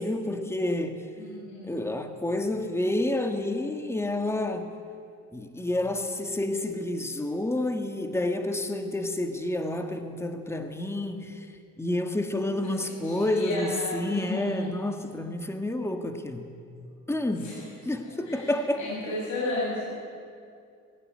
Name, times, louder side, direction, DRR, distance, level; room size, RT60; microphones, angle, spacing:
voice 1, 0.0-1.1 1.7-4.7 5.3-16.5 17.1-17.6 17.8-18.8, left 1 dB, 10° left, 6 dB, 1.6 m, -29 dB
voice 2, 1.2-1.9 5.6-6.2 12.6-14.7 17.4-17.6 18.0-19.8, left 2 dB, 70° left, -6 dB, 7.2 m, -34 dB
20.5 x 16.0 x 9.6 m, 2.4 s
cardioid pair, 90°, 30 cm